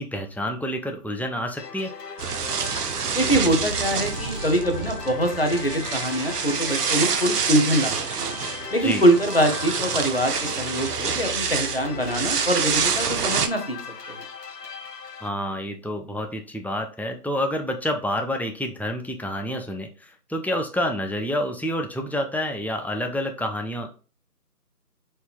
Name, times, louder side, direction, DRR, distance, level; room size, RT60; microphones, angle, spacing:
voice 1, 0.0-1.9 8.8-9.1 15.2-24.0, left 1 dB, 5° left, 4 dB, 0.3 m, -28 dB
sound 1, 1.6-15.3, left 5 dB, 80° left, 0.8 m, -38 dB
sound 2, 2.2-13.5, right 6 dB, 75° right, 0.6 m, -27 dB
voice 2, 3.1-7.9 8.2-8.4 8.7-13.8 14.1-14.2, right 1 dB, 40° left, 4 dB, 0.6 m, -23 dB
4.2 x 2.5 x 3.4 m, 0.36 s
figure-of-eight pair, 175°, 48 cm